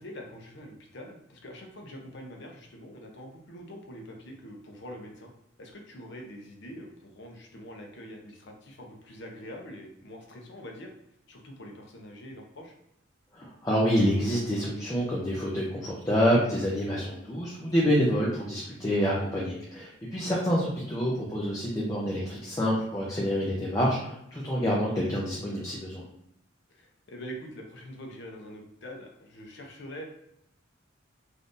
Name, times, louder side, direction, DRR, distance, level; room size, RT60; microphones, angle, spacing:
voice 1, 0.0-5.3 5.6-10.9 11.3-12.7 16.9-17.1 20.1-20.4 26.7-30.0, equal, 60° left, 1 dB, 0.6 m, -44 dB
voice 2, 13.3-26.0, equal, 20° left, -5 dB, 0.5 m, -27 dB
3.6 x 2.6 x 2.5 m, 0.78 s
head